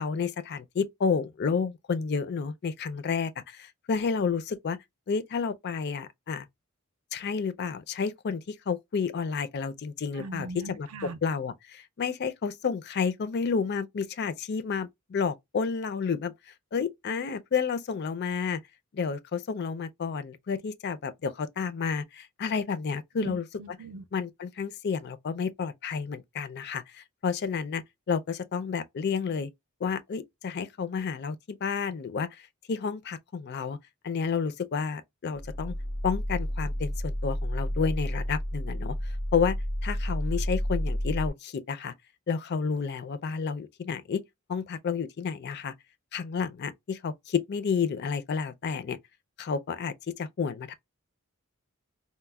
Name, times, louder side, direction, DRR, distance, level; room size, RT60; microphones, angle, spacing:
voice 1, 0.0-4.8 5.1-6.5 7.1-10.9 11.2-16.3 16.7-18.6 18.9-23.4 24.1-29.5 29.8-33.8 34.0-35.8 36.0-38.9 39.3-39.6 39.8-41.9 42.3-44.2 44.5-45.7 46.1-49.0 49.4-50.7, left 5 dB, 50° left, 0.4 m, -30 dB
voice 2, 10.1-11.2 23.2-24.0, right 1 dB, 75° right, 0.6 m, -40 dB
sound 1, 35.3-41.3, equal, 85° left, 0.7 m, -31 dB
4.0 x 2.0 x 2.2 m
head